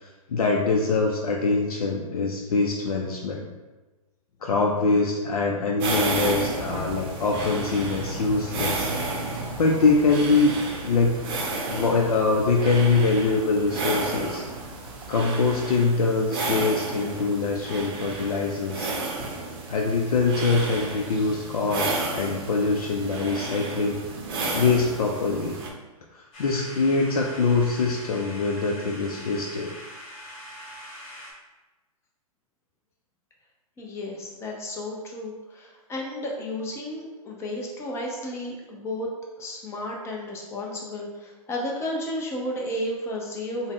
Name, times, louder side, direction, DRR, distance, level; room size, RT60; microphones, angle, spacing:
voice 1, 0.0-3.5 4.4-8.9 9.6-10.6 10.8-11.2 11.7-14.4 15.1-18.9 19.7-24.0 24.5-25.6 26.1-29.8, left 3 dB, 80° left, 0 dB, 0.4 m, -24 dB
sound 1, 5.8-25.7, right 2 dB, 40° right, 0.6 m, -32 dB
sound 2, 5.8-15.8, right 1 dB, 90° right, 0.6 m, -40 dB
sound 3, 26.3-31.3, equal, 60° left, 1.2 m, -42 dB
voice 2, 33.8-39.1 39.4-43.7, left 1 dB, 15° left, -1 dB, 0.6 m, -33 dB
3.5 x 2.1 x 3.6 m, 1.2 s
hypercardioid pair, 125°, 19 cm